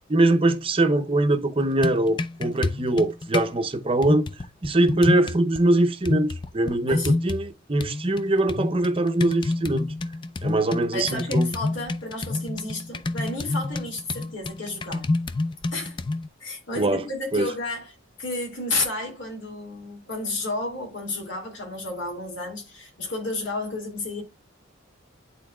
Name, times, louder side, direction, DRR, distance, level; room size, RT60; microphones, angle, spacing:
voice 1, 0.1-4.3 4.6-9.9 10.4-11.5 16.7-17.1 17.3-17.5, right 2 dB, 25° right, 0.6 m, -22 dB
sound 1, 1.6-3.5 4.0-5.6 6.1-7.5 7.8-16.3, left 2 dB, 25° left, 0.3 m, -28 dB
voice 2, 10.9-15.1 15.7-16.0 16.4-17.9 18.2-24.2, left 2 dB, 65° left, 2.6 m, -31 dB
10.5 x 3.9 x 2.3 m
head